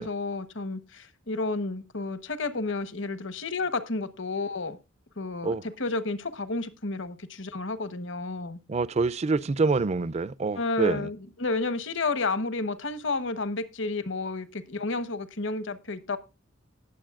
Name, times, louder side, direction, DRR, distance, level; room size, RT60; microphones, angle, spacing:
voice 1, 0.0-4.8 5.2-8.6 10.5-16.2, left 3 dB, 65° left, 1.2 m, -31 dB
voice 2, 8.7-11.1, right 4 dB, 35° right, 0.4 m, -26 dB
19.0 x 7.2 x 2.5 m
head